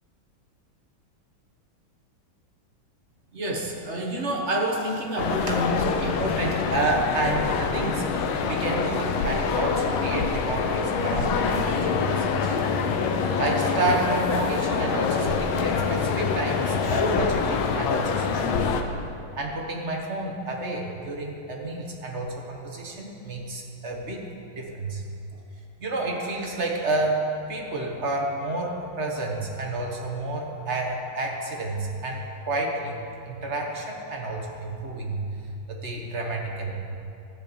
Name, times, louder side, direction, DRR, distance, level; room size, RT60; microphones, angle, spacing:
voice 1, 3.3-12.6 13.4-18.8 19.3-25.0 25.3-25.4 25.8-35.4 35.7-36.8, right 2 dB, 40° right, 0 dB, 1.2 m, -30 dB
sound 1, 5.2-18.8, left 5 dB, 75° left, 1.5 m, -25 dB
13.0 x 5.3 x 8.6 m, 2.7 s
omnidirectional pair, 2.4 m